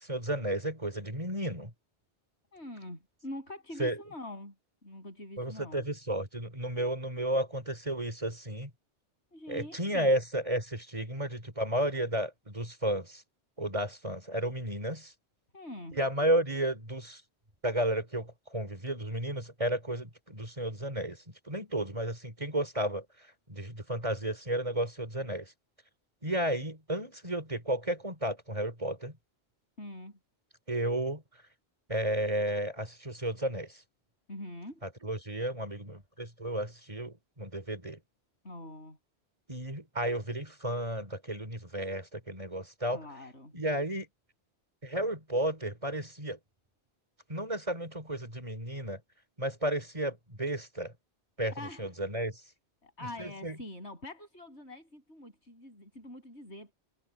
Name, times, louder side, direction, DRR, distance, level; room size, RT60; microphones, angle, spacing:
voice 1, 0.0-1.7 3.8-4.0 5.4-8.7 9.5-13.2 13.6-15.1 15.9-17.2 17.6-21.2 21.5-23.0 23.5-25.5 26.2-29.2 30.7-31.2 31.9-33.8 34.8-38.0 39.5-43.0 43.5-44.1 44.8-46.4 47.3-49.0 49.4-50.9 51.4-52.4 53.2-53.5, right 1 dB, 30° right, 3.8 m, -33 dB
voice 2, 2.5-4.5 4.8-5.9 9.3-10.1 15.5-16.0 29.8-30.2 34.3-34.8 38.4-39.0 42.9-43.5 51.5-51.9 52.8-56.7, left 1 dB, 90° left, 7.7 m, -44 dB
omnidirectional pair, 1.1 m